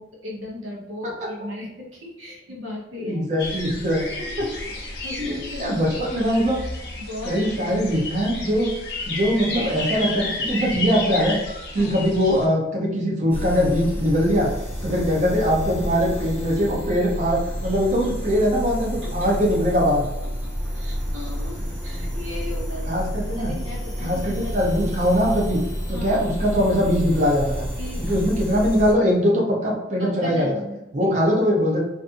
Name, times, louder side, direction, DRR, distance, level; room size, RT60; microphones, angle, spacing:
voice 1, 0.0-3.2 5.0-6.4 7.0-8.0 11.8-11.9 14.9-15.0 17.6-17.8 18.0-18.1 20.4-23.0 23.4-24.5 25.9-26.2 27.8-28.2 30.0-31.1, left 2 dB, 90° right, -3 dB, 0.8 m, -37 dB
voice 2, 3.0-4.5 5.2-6.6 7.2-8.7 9.1-11.4 11.7-14.5 14.8-20.0 22.9-23.5 24.0-25.6 25.9-27.7 28.1-30.5 30.9-31.8, equal, 40° right, -2 dB, 0.6 m, -22 dB
sound 1, 3.4-12.4, left 2 dB, 60° left, 0.6 m, -32 dB
sound 2, 13.3-28.9, equal, 10° left, 0.6 m, -30 dB
2.5 x 2.4 x 2.5 m, 0.93 s
head